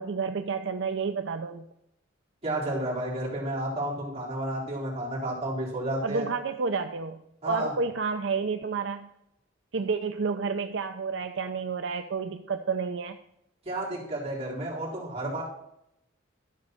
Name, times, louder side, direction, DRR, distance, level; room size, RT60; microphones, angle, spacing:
voice 1, 0.0-1.6 6.0-9.1 9.7-13.2, right 5 dB, 65° right, 7 dB, 0.5 m, -30 dB
voice 2, 2.4-6.2 7.4-7.7 13.6-15.4, right 1 dB, 30° right, -6 dB, 3.8 m, -31 dB
12.5 x 5.3 x 6.4 m, 0.80 s
head